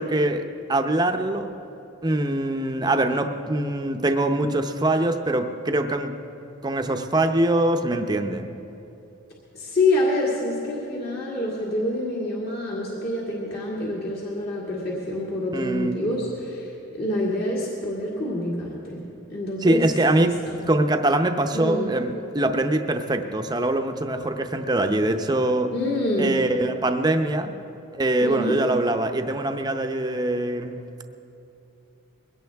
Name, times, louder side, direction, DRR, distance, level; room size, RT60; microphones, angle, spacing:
voice 1, 0.0-1.5 2.0-6.2 6.6-8.6 15.5-16.0 19.6-20.3 20.7-25.7 26.2-27.5 27.9-31.0, right 1 dB, 20° right, 6 dB, 0.7 m, -23 dB
voice 2, 9.5-19.8 20.2-20.6 21.5-21.9 25.7-26.4 28.2-28.6, left 1 dB, 50° left, -5 dB, 2.1 m, -27 dB
21.5 x 17.0 x 3.5 m, 2.8 s
head